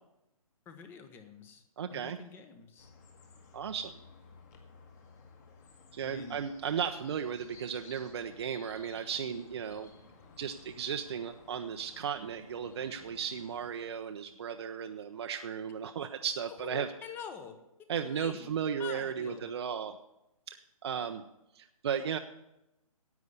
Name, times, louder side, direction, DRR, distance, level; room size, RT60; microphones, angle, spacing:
voice 1, 0.6-1.6 1.9-2.9 6.0-6.4 16.6-19.5, left 6 dB, 10° left, 8 dB, 0.8 m, -46 dB
voice 2, 1.8-2.2 3.5-4.0 5.9-9.9 10.4-16.9 17.9-20.0 20.5-21.2 21.5-22.2, right 7 dB, 45° right, 6 dB, 0.7 m, -35 dB
sound 1, 2.8-13.7, left 4 dB, 30° left, 1.7 m, -56 dB
10.5 x 8.3 x 8.2 m, 0.88 s
hypercardioid pair, 150°, 19 cm